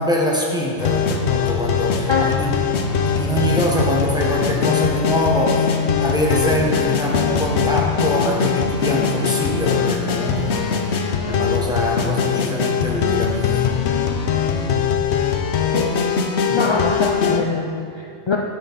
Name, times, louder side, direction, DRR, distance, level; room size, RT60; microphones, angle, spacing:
voice 1, 0.0-2.6 3.0-13.7 16.5-16.6, equal, 5° right, -4 dB, 1.2 m, -24 dB
sound 1, 0.8-17.4, left 6 dB, 75° left, 1.0 m, -21 dB
voice 2, 16.5-18.4, left 4 dB, 40° left, 0 dB, 0.4 m, -22 dB
11.0 x 7.3 x 4.1 m, 2.3 s
omnidirectional pair, 1.2 m